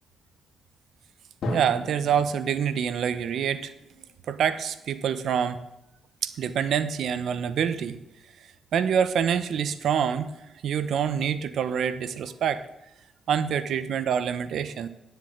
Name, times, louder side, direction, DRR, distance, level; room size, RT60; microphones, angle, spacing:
Drum, 1.4-5.1, left 1 dB, 60° left, 2.5 m, -38 dB
voice 1, 1.5-3.7 4.3-5.6 6.2-8.0 8.7-10.3 10.6-12.6 13.3-14.9, right 8 dB, 65° right, 13 dB, 0.9 m, -26 dB
9.9 x 7.0 x 8.7 m, 0.90 s
cardioid pair, 90°, 0 cm